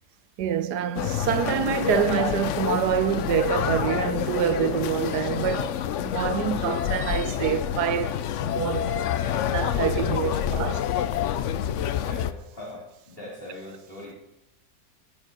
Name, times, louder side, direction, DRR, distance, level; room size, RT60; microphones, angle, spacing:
voice 1, 0.4-5.7 6.0-8.1 8.4-9.1 9.5-10.8, right 10 dB, 90° right, 1.4 m, -26 dB
sound 1, 0.9-12.3, left 10 dB, 60° left, 0.8 m, -27 dB
voice 2, 11.9-14.1, left 1 dB, 35° left, 3.5 m, -41 dB
11.0 x 7.5 x 9.9 m
omnidirectional pair, 1.7 m